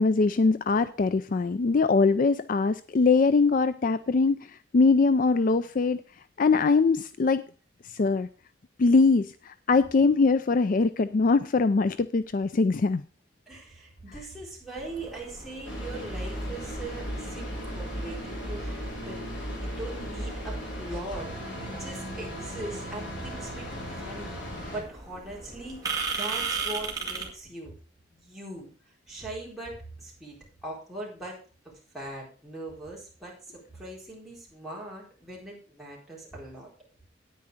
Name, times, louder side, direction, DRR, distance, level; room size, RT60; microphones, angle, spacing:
voice 1, 0.0-4.5 4.7-6.0 6.4-7.4 8.0-8.3 8.8-13.0, left 4 dB, 45° left, 13 dB, 0.4 m, -22 dB
voice 2, 13.5-24.4 24.7-27.8 28.1-28.7 29.1-30.4 30.6-36.7, right 2 dB, ahead, -5 dB, 4.2 m, -41 dB
sound 1, 14.8-27.3, right 4 dB, 20° right, 2.1 m, -39 dB
sound 2, 15.6-24.8, equal, 70° left, 4.6 m, -36 dB
9.5 x 9.2 x 4.9 m, 0.37 s
head